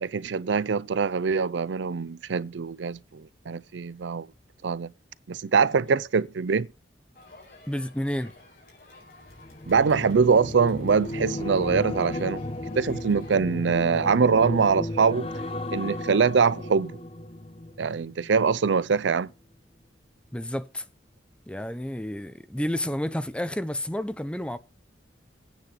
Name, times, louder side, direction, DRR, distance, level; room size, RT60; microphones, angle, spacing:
voice 1, 0.0-4.3 4.6-4.9 5.3-6.7 9.7-12.4 12.8-15.3 15.7-16.9 17.8-19.3, right 5 dB, 80° right, 0.5 m, -23 dB
Crowd, 7.1-13.4, left 2 dB, 50° left, 4.9 m, -51 dB
voice 2, 7.7-8.3 20.3-20.8 21.5-24.6, equal, 5° left, 0.6 m, -30 dB
sound 1, 9.2-18.6 18.9-19.3, left 1 dB, 30° left, 1.0 m, -35 dB
9.4 x 7.4 x 5.5 m
head